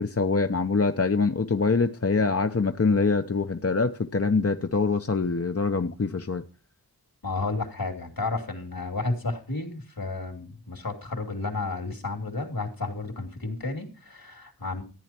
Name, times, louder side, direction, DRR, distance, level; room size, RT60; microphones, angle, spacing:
voice 1, 0.0-6.4, left 4 dB, 40° left, 0.8 m, -24 dB
voice 2, 7.2-14.8, left 3 dB, 65° left, 3.0 m, -32 dB
14.5 x 9.9 x 4.4 m
wide cardioid pair, 55°, 37 cm